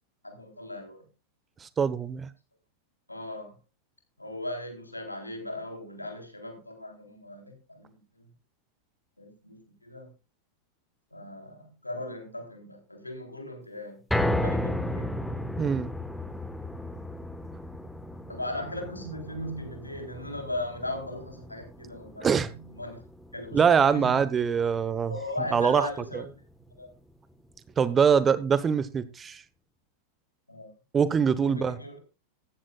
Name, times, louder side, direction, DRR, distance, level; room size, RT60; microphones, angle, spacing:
voice 1, 0.2-1.0 3.1-3.6 4.2-8.3 9.2-10.1 11.1-15.2 18.3-23.0 23.3-24.2 25.0-26.3 26.7-26.9 30.5-30.7 31.4-32.0, left 1 dB, 85° left, 3.7 m, -38 dB
voice 2, 1.6-2.3 15.6-15.9 22.2-22.5 23.5-25.1 25.5-25.9 27.8-29.4 30.9-31.8, right 6 dB, 20° right, 1.0 m, -23 dB
sound 1, 14.1-26.3 26.7-26.8 27.3-27.4, left 1 dB, 5° left, 1.3 m, -35 dB
15.0 x 14.0 x 2.4 m
figure-of-eight pair, 90°, 0 cm